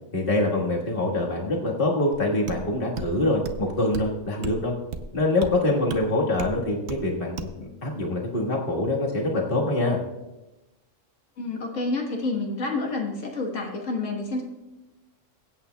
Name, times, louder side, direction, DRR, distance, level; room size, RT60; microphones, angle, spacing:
voice 1, 0.1-4.7 5.1-10.0, left 2 dB, 45° left, -2 dB, 1.8 m, -25 dB
sound 1, 2.5-2.6 3.0-3.1 3.5-3.7 3.9-4.1 4.4-4.6 4.9-5.1 5.4-5.5 5.9-6.0 6.4-6.6 6.9-7.0 7.4-7.6, right 5 dB, 65° right, 1.0 m, -33 dB
voice 2, 11.4-14.4, left 3 dB, 85° left, 0 dB, 1.8 m, -29 dB
22.5 x 8.5 x 2.3 m, 1.0 s
omnidirectional pair, 1.3 m